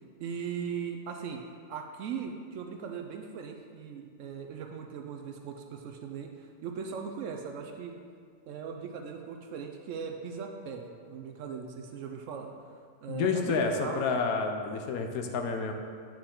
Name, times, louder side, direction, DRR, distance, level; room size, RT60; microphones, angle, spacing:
voice 1, 0.2-1.4 1.7-8.0 8.5-12.5 13.0-14.0, right 6 dB, 70° right, 3 dB, 0.8 m, -39 dB
voice 2, 13.1-15.7, left 5 dB, 80° left, 4 dB, 1.1 m, -29 dB
8.8 x 4.4 x 3.8 m, 2.1 s
omnidirectional pair, 1.5 m